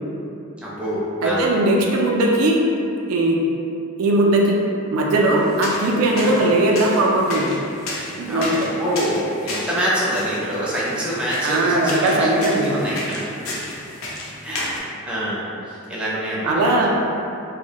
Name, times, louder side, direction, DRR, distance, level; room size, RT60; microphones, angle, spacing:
voice 1, 0.6-1.5 6.1-6.4 8.3-13.6 14.4-16.9, equal, 5° right, -8 dB, 0.4 m, -26 dB
voice 2, 1.2-2.6 3.1-3.4 4.0-4.6 4.9-7.5 8.2-8.7 11.4-12.8 16.4-16.9, right 2 dB, 80° right, 0 dB, 0.3 m, -18 dB
sound 1, 5.4-14.8, left 1 dB, 65° left, 0.4 m, -33 dB
2.2 x 2.0 x 2.7 m, 2.6 s
head